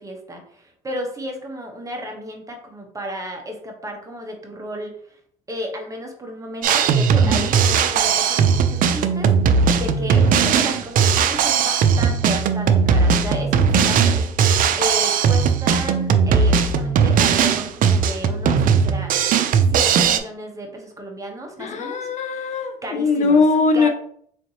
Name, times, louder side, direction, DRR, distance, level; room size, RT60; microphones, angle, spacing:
voice 1, 0.0-5.2 5.5-14.2 14.8-19.1 19.7-22.1 22.8-23.4 23.7-23.9, equal, 20° right, 2 dB, 0.9 m, -33 dB
Drum kit, 6.6-20.2, right 6 dB, 55° right, 0.4 m, -18 dB
voice 2, 21.6-23.9, left 4 dB, 45° left, 6 dB, 0.5 m, -20 dB
3.8 x 3.2 x 2.8 m, 0.64 s
cardioid pair, 110°, 17 cm